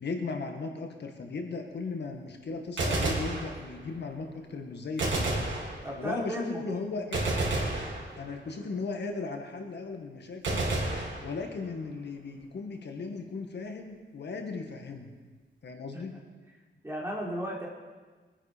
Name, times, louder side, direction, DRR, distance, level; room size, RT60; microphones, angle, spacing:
voice 1, 0.0-5.4 6.0-7.4 8.2-10.6 11.2-15.1 15.6-16.2, left 4 dB, 65° left, 3 dB, 1.7 m, -37 dB
Gunshot gunfire, 2.6-4.0 5.0-6.2 7.1-8.6 10.4-11.8, right 2 dB, 75° right, 3.7 m, -31 dB
voice 2, 5.8-6.8 15.9-16.0 16.8-17.7, equal, 15° right, -4 dB, 3.5 m, -35 dB
23.0 x 9.6 x 5.1 m, 1.4 s
wide cardioid pair, 150°, 19 cm